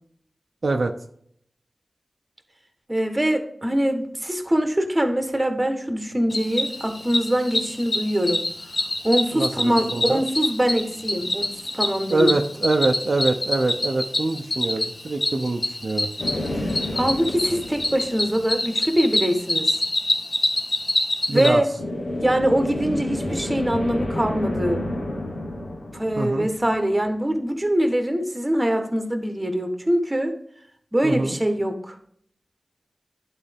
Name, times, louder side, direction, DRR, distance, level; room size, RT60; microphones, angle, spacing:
voice 1, 2.9-8.4 9.0-12.3 16.5-19.8 21.3-21.7 22.2-24.8 25.9-30.3 30.9-32.0, equal, 20° right, 6 dB, 1.1 m, -23 dB
Cricket, 6.3-21.5, left 1 dB, 60° left, 1.7 m, -26 dB
voice 2, 9.3-10.2 12.1-16.1 21.3-21.6 26.2-26.5 31.0-31.4, right 3 dB, 65° right, 3 dB, 0.6 m, -24 dB
sound 1, 16.2-19.0 21.8-27.2, left 1 dB, 85° left, 1.1 m, -30 dB
11.0 x 3.9 x 3.5 m, 0.67 s
wide cardioid pair, 70°, 0 cm